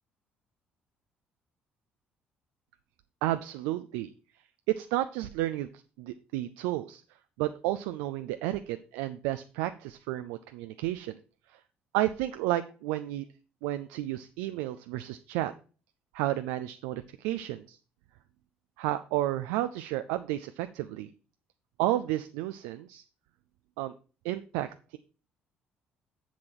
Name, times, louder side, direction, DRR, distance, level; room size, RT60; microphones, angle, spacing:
voice 1, 3.2-4.1 4.7-5.7 6.0-7.0 7.4-11.2 11.5-11.6 11.9-13.2 13.6-15.5 16.1-17.8 18.8-21.1 21.8-23.0 23.8-23.9 24.2-25.0, right 15 dB, 65° right, 10 dB, 0.4 m, -32 dB
7.6 x 7.1 x 4.4 m, 0.37 s
figure-of-eight pair, 50°, 5 cm